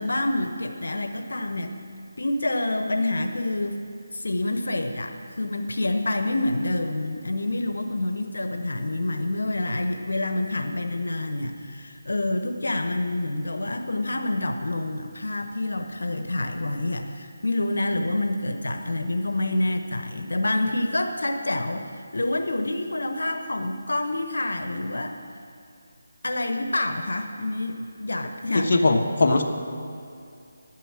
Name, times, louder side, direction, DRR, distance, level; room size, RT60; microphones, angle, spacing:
voice 1, 0.0-1.8 2.2-3.8 4.1-25.2 26.2-28.7, left 2 dB, 90° left, 6 dB, 1.0 m, -27 dB
voice 2, 28.5-29.4, left 2 dB, 55° left, 3 dB, 1.2 m, -20 dB
11.5 x 9.2 x 7.5 m, 2.5 s
figure-of-eight pair, 165°, 0 cm